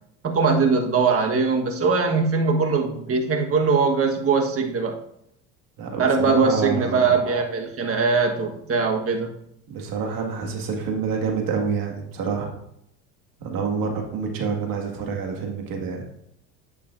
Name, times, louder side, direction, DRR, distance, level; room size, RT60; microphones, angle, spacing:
voice 1, 0.2-5.0 6.0-9.3, right 4 dB, 35° right, 4 dB, 1.4 m, -21 dB
voice 2, 5.8-7.2 9.7-12.5 13.4-16.0, right 5 dB, 55° right, 1 dB, 2.0 m, -27 dB
8.9 x 6.7 x 2.6 m, 0.76 s
supercardioid pair, 90°, 40 cm